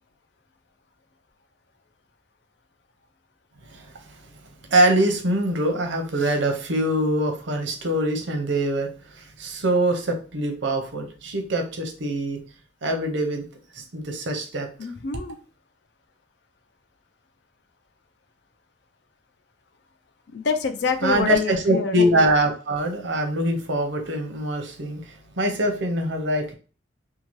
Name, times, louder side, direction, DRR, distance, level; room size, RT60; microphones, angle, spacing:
voice 1, 4.7-12.4 12.8-13.5 13.7-14.7 21.0-26.5, right 1 dB, 80° right, 4 dB, 0.7 m, -23 dB
voice 2, 14.8-15.4 20.3-21.9, left 5 dB, 65° left, 7 dB, 0.4 m, -26 dB
2.8 x 2.3 x 3.0 m, 0.36 s
head